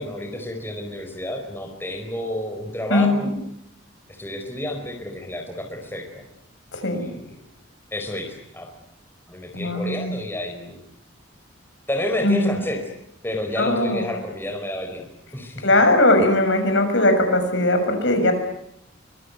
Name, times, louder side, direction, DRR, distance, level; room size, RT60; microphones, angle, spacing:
voice 1, 0.0-3.3 4.1-6.2 6.9-7.3 7.9-8.7 9.3-10.8 11.9-12.8 13.2-15.1 15.3-15.7, left 1 dB, 10° left, 3 dB, 4.6 m, -30 dB
voice 2, 2.9-3.3 6.7-7.0 9.5-10.2 12.2-12.6 13.6-14.1 15.6-18.3, left 1 dB, 65° left, 6 dB, 6.5 m, -19 dB
25.0 x 23.0 x 9.5 m, 0.78 s
head